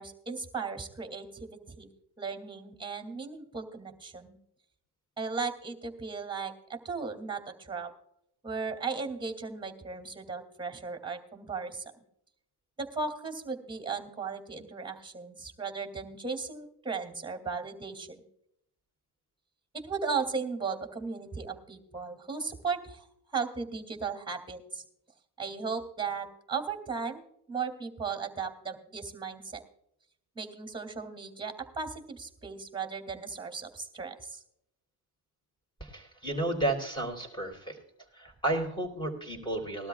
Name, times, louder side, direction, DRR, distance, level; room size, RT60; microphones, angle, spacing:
voice 1, 0.0-1.9 2.2-4.4 5.2-7.9 8.4-11.9 12.8-18.2 19.7-24.8 25.4-29.6 30.3-34.4, right 5 dB, 10° right, 6 dB, 2.6 m, -36 dB
voice 2, 35.8-37.8 38.1-39.9, right 2 dB, 10° left, 1 dB, 4.1 m, -32 dB
20.0 x 12.5 x 2.4 m, 0.74 s
cardioid pair, 105°, 42 cm